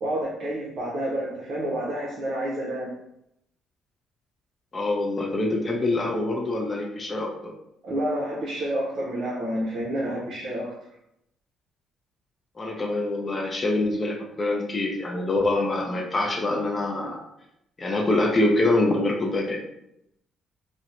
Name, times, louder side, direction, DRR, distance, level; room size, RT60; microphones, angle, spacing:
voice 1, 0.0-2.9 7.8-10.7, right 1 dB, 60° right, -5 dB, 0.6 m, -29 dB
voice 2, 4.7-7.5 12.6-17.2 17.8-19.6, left 2 dB, 30° left, 0 dB, 0.4 m, -25 dB
2.7 x 2.0 x 2.5 m, 0.80 s
cardioid pair, 90°, 0 cm